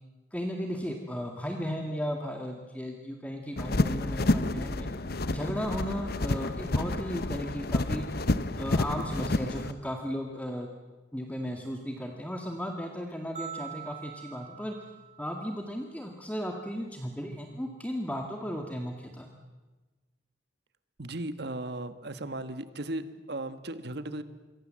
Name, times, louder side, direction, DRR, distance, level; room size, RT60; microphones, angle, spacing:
voice 1, 0.3-4.9 5.3-8.1 8.6-10.7 11.1-14.8 15.2-19.3, equal, 10° left, 2 dB, 1.9 m, -35 dB
sound 1, 3.6-9.7, left 2 dB, 60° left, 1.1 m, -29 dB
sound 2, 13.4-15.7, right 8 dB, 40° right, 1.5 m, -44 dB
voice 2, 21.0-24.2, right 1 dB, 65° right, 11 dB, 1.6 m, -36 dB
27.5 x 23.5 x 7.6 m, 1.2 s
head